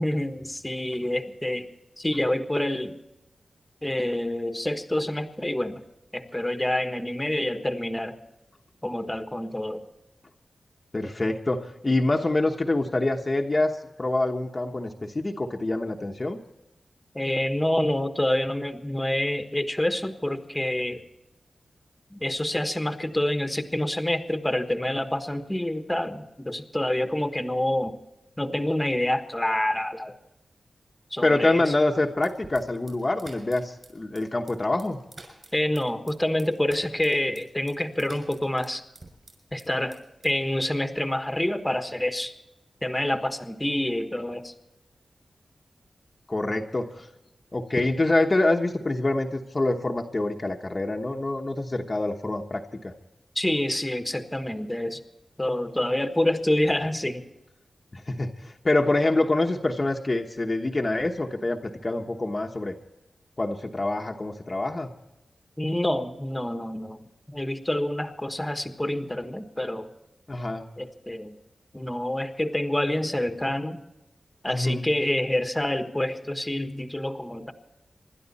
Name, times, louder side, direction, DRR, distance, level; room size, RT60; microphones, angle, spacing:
voice 1, 0.0-1.7 2.0-3.0 3.8-5.8 6.1-8.2 8.8-9.8 17.1-21.0 22.1-28.0 28.4-30.2 31.1-31.7 35.5-38.8 39.5-42.3 42.8-44.5 53.3-55.0 55.4-57.2 65.6-67.0 67.3-69.9 70.8-71.4 71.7-73.8 74.4-77.5, left 1 dB, 10° left, 7 dB, 1.4 m, -27 dB
voice 2, 10.9-16.4 31.2-35.0 46.3-47.1 47.5-52.9 57.9-62.7 63.4-64.9 70.3-70.6 74.5-74.8, left 2 dB, 30° left, 2 dB, 1.2 m, -26 dB
sound 1, 32.2-39.7 39.9-40.5, right 2 dB, 40° right, 6.1 m, -49 dB
26.5 x 12.0 x 4.2 m, 0.93 s
wide cardioid pair, 100°, 0 cm